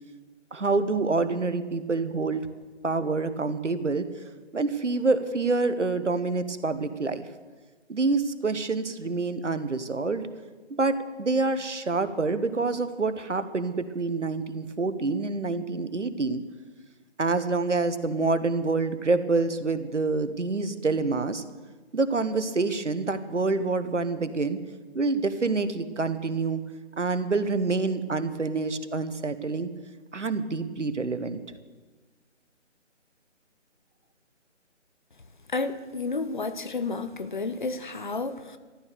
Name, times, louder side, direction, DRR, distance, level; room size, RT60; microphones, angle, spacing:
voice 1, 0.5-2.5 2.8-4.0 4.5-7.3 7.9-10.3 10.7-16.4 17.2-21.4 21.9-24.6 24.9-26.6 27.0-29.7 30.1-31.4, right 3 dB, 75° right, 11 dB, 1.3 m, -27 dB
voice 2, 35.5-38.6, left 3 dB, 40° left, 11 dB, 0.8 m, -31 dB
13.5 x 12.0 x 6.9 m, 1.3 s
figure-of-eight pair, 155°, 36 cm